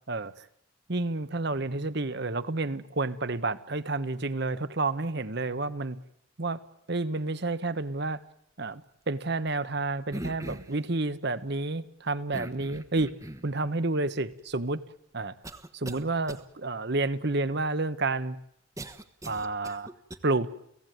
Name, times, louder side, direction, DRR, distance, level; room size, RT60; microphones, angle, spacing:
voice 1, 0.1-0.5 0.9-6.0 6.4-6.6 6.9-8.2 8.6-13.1 13.4-14.8 15.1-15.3 15.7-18.4 19.3-19.9 20.2-20.5, right 2 dB, 55° right, 13 dB, 1.1 m, -30 dB
sound 1, 10.1-10.8 12.3-13.5 14.3-14.4 15.4-16.0 16.3-16.4 18.8-20.2, right 1 dB, 15° right, 1.2 m, -40 dB
30.0 x 17.0 x 9.4 m, 0.77 s
head